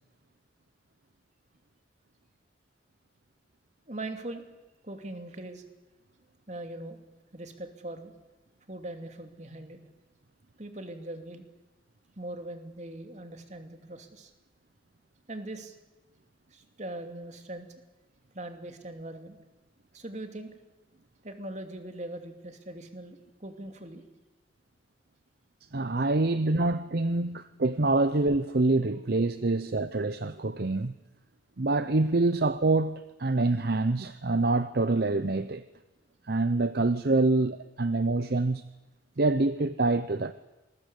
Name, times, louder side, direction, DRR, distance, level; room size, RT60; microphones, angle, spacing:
voice 1, 3.9-4.4 4.8-5.6 6.5-7.0 7.3-8.1 8.7-9.8 10.6-11.4 12.2-14.3 15.3-15.8 16.5-17.7 18.3-19.4 19.9-20.5 21.2-24.0, right 1 dB, 40° right, 2.8 m, -41 dB
voice 2, 25.7-30.9 31.6-35.6 36.3-38.7 39.2-40.3, right 2 dB, 55° right, 0.8 m, -26 dB
28.0 x 20.5 x 8.4 m
head